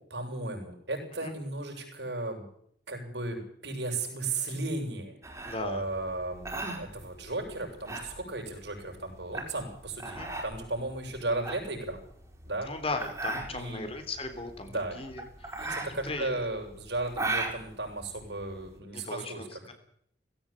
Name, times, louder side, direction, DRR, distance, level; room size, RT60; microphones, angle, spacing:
voice 1, 0.1-2.4 2.9-5.2 5.6-12.0 12.5-12.7 13.5-13.9 14.6-15.0 15.6-19.7, right 2 dB, 70° right, 3 dB, 7.5 m, -35 dB
sound 1, 5.2-18.8, right 2 dB, 15° right, 4.8 m, -37 dB
voice 2, 5.4-5.8 10.1-10.3 12.6-15.5 16.0-16.4 18.9-19.7, left 2 dB, 30° left, 7 dB, 3.4 m, -37 dB
19.0 x 16.5 x 8.9 m, 0.67 s
head